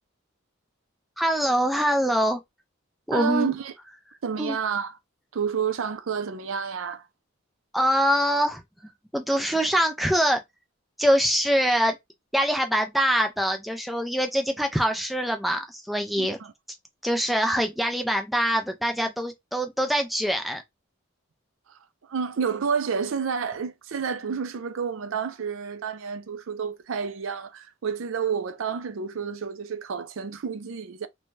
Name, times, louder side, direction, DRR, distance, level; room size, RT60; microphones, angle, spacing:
voice 1, 1.2-2.4 3.1-3.5 4.4-4.6 7.7-8.6 9.1-10.4 11.0-12.0 12.3-16.4 17.0-20.6, equal, ahead, 0.3 m, -24 dB
voice 2, 3.1-3.7 4.2-5.0 5.3-7.1 16.2-16.5 21.7-31.1, right 6 dB, 70° right, 0.4 m, -30 dB
2.6 x 2.2 x 3.1 m
head